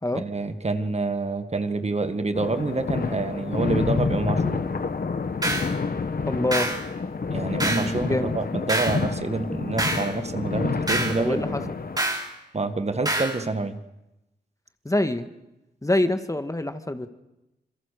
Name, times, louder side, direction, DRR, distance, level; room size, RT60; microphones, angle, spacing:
voice 1, 0.1-4.6 7.3-11.7 12.5-13.8, right 3 dB, 40° right, 9 dB, 1.8 m, -27 dB
sound 1, 2.4-12.0, left 4 dB, 60° left, 1.8 m, -28 dB
sound 2, 5.4-5.7 6.5-6.8 7.6-7.9 8.7-9.0 9.8-10.1 10.9-11.2 12.0-12.3 13.1-13.4, right 1 dB, 20° right, 4.7 m, -26 dB
voice 2, 6.2-6.7 7.9-8.3 11.2-11.8 14.8-15.3 15.8-17.1, left 1 dB, 20° left, 9 dB, 1.8 m, -25 dB
26.5 x 22.5 x 6.7 m, 0.94 s
cardioid pair, 60°, 18 cm